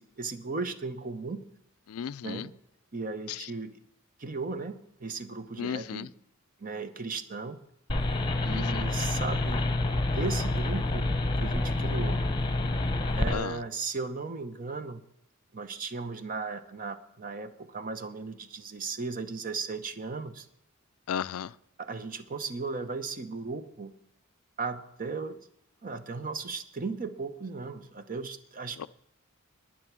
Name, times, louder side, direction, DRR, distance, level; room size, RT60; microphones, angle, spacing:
voice 1, 0.0-1.5 2.2-2.5 2.9-3.8 4.2-6.1 6.6-7.6 8.4-9.7 10.1-11.1 11.4-12.2 13.2-15.0 15.5-20.5 21.8-23.9 24.6-25.4 25.8-28.9, right 4 dB, 40° right, 0.9 m, -36 dB
voice 2, 1.9-2.5 3.3-3.5 5.6-6.1 8.4-8.8 13.3-13.6 21.1-21.5 28.8-28.9, left 8 dB, 85° left, 0.4 m, -35 dB
sound 1, 7.9-13.3, left 2 dB, 20° left, 1.0 m, -28 dB
11.5 x 10.0 x 6.1 m
head